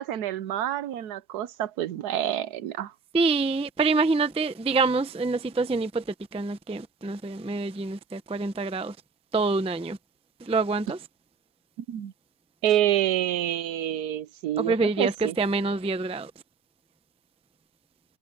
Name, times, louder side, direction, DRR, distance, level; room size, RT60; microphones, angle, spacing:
voice 1, 0.0-2.9 11.9-12.1 12.6-15.3, right 12 dB, 80° right, 1.3 m, -27 dB
voice 2, 3.1-6.0 6.3-9.0 9.3-10.0 10.4-11.0 14.6-16.3, right 3 dB, 10° right, 0.3 m, -26 dB
omnidirectional pair, 1.7 m